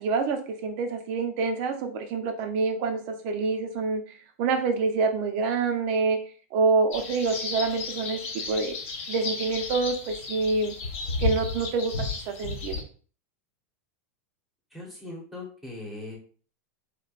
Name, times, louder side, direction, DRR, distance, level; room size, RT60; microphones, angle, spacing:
voice 1, 0.0-4.0 4.4-6.2 6.5-8.7 9.1-10.7 11.2-12.8, right 4 dB, 50° right, 5 dB, 0.6 m, -27 dB
sound 1, 6.9-12.8, left 3 dB, 65° left, 1.6 m, -33 dB
voice 2, 14.7-16.2, left 2 dB, ahead, -2 dB, 1.1 m, -39 dB
4.3 x 2.2 x 2.4 m, 0.42 s
supercardioid pair, 150°, 8 cm